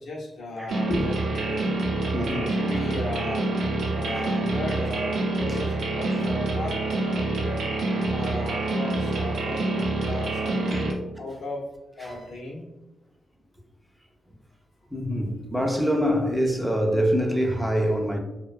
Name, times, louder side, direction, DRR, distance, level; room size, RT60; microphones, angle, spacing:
voice 1, 0.0-1.7 2.2-3.5 3.9-7.6 8.1-9.6 10.0-11.6 12.0-12.7, left 2 dB, 85° left, 0.5 m, -35 dB
sound 1, 0.7-10.9, right 2 dB, 80° right, 0.5 m, -27 dB
voice 2, 2.1-2.6 3.9-4.3 5.5-5.6 10.7-10.8 12.0-12.3 14.9-18.2, equal, ahead, 0.3 m, -25 dB
2.5 x 2.1 x 2.2 m
wide cardioid pair, 165°, 0 cm